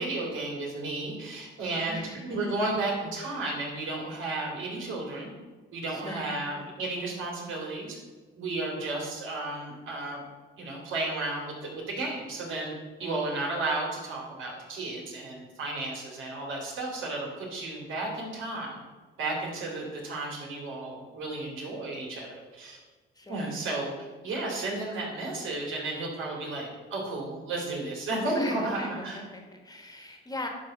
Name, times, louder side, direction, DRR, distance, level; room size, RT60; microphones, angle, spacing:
voice 1, 0.0-5.3 5.7-8.0 8.4-10.2 10.6-12.7 13.0-18.8 19.2-22.8 23.3-29.2, right 2 dB, 80° right, -1 dB, 2.8 m, -33 dB
voice 2, 1.9-2.8 3.3-3.4 5.9-6.5 13.0-13.2 23.1-23.6 28.3-30.5, left 1 dB, 20° left, 3 dB, 1.5 m, -40 dB
10.0 x 3.5 x 6.4 m, 1.3 s
cardioid pair, 90°, 20 cm